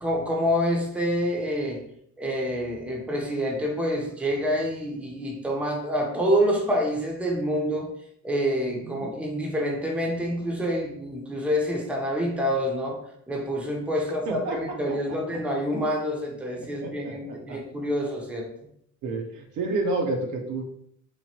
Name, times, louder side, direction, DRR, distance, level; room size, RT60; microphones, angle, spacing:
voice 1, 0.0-1.8 2.2-7.9 8.2-13.0 13.3-18.5, equal, 5° right, 0 dB, 0.6 m, -27 dB
voice 2, 8.7-9.1 14.3-14.6 14.9-15.2 16.8-17.6 19.0-20.6, right 2 dB, 75° right, 2 dB, 0.6 m, -30 dB
3.0 x 2.2 x 2.8 m, 0.71 s
cardioid pair, 90°, 30 cm